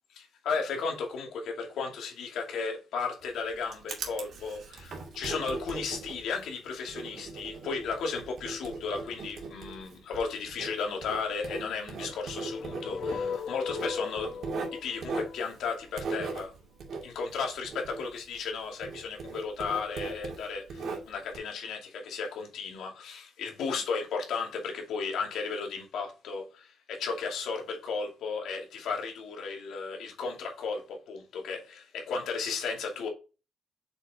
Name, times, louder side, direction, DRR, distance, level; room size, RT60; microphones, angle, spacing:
voice 1, 0.1-16.5 17.0-33.1, left 5 dB, 75° left, 2.5 m, -34 dB
Writing, 3.2-18.6 18.8-21.4, right 4 dB, 60° right, 2.4 m, -39 dB
sound 1, 12.1-16.2, left 6 dB, 55° left, 1.1 m, -38 dB
6.7 x 4.6 x 3.6 m
cardioid pair, 90°, 0 cm